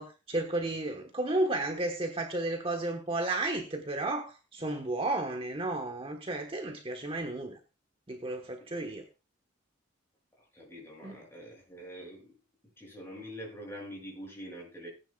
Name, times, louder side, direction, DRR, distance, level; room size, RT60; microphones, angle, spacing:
voice 1, 0.0-7.6 8.1-9.0 11.0-11.2, right 2 dB, 30° right, 4 dB, 1.3 m, -33 dB
voice 2, 10.5-12.3 12.8-14.9, equal, 10° left, -2 dB, 7.2 m, -45 dB
19.5 x 9.8 x 2.4 m, 0.30 s
head